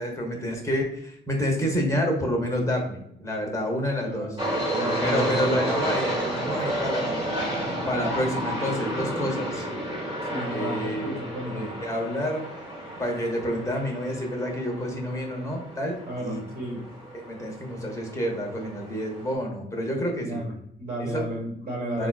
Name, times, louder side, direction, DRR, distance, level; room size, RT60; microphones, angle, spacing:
voice 1, 0.0-4.4 5.0-7.2 7.7-9.7 10.5-12.5 13.0-16.4 17.3-20.4 21.0-21.3 22.0-22.1, equal, 15° left, 0 dB, 0.7 m, -29 dB
voice 2, 4.0-4.5 4.7-5.6 10.3-11.7 16.0-16.8 20.2-22.1, right 1 dB, 50° right, 0 dB, 1.1 m, -33 dB
FX - avion, 4.4-19.3, right 1 dB, 25° right, 1.1 m, -31 dB
3.7 x 2.3 x 2.3 m, 0.74 s
cardioid pair, 90°, 20 cm